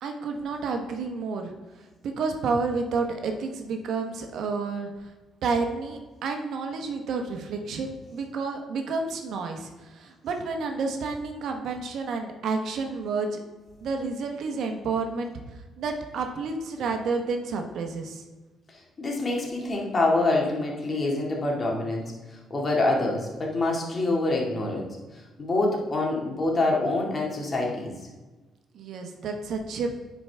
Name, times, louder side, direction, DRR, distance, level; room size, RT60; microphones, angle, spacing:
voice 1, 0.0-1.5 1.8-5.1 5.4-13.4 13.8-18.2 28.7-29.9, right 4 dB, 75° right, 4 dB, 1.0 m, -30 dB
voice 2, 18.7-22.0 22.5-24.9 25.1-27.9, left 2 dB, 35° left, -1 dB, 2.1 m, -26 dB
10.5 x 4.6 x 3.5 m, 1.2 s
cardioid pair, 90°, 0 cm